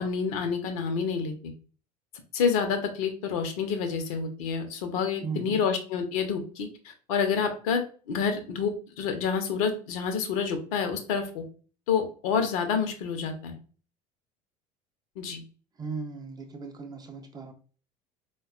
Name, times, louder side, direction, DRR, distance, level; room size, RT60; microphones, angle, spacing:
voice 1, 0.0-1.5 2.3-11.4 11.9-13.6 15.2-15.4, left 6 dB, 60° left, 0.6 m, -28 dB
voice 2, 5.2-5.6 15.8-17.5, right 5 dB, 20° right, 0.5 m, -37 dB
4.0 x 2.2 x 2.4 m
figure-of-eight pair, 70°, 20 cm